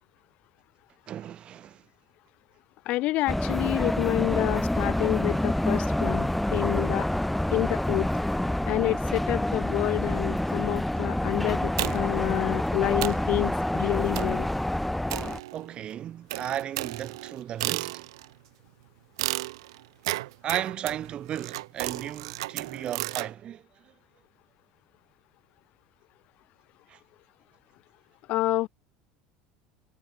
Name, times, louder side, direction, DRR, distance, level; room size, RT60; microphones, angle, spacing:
voice 1, 1.1-1.8 15.5-18.1 20.4-23.9 26.9-27.0, right 10 dB, 40° right, 3.8 m, -35 dB
voice 2, 2.8-7.1 7.5-8.1 8.6-14.5 28.3-28.7, left 18 dB, 60° left, 1.6 m, -28 dB
sound 1, 3.3-15.4, left 1 dB, 5° left, 3.3 m, -27 dB
sound 2, 11.8-12.2 12.7-12.8 13.0-13.3 14.1-14.5 15.1-15.8 16.3-18.3 19.2-23.3, right 18 dB, 85° right, 1.8 m, -33 dB
supercardioid pair, 105°, 3 cm